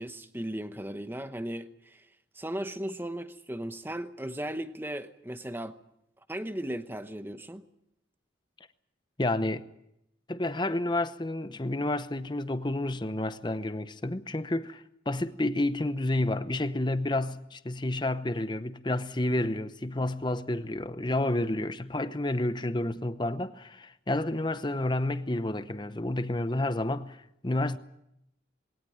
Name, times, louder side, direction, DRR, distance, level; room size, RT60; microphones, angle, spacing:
voice 1, 0.0-2.1 2.3-5.8 6.3-7.6, right 1 dB, 10° right, 0.9 m, -36 dB
voice 2, 9.2-9.7 10.3-27.2 27.4-27.8, left 1 dB, 25° left, 0.8 m, -30 dB
21.0 x 18.0 x 9.1 m
head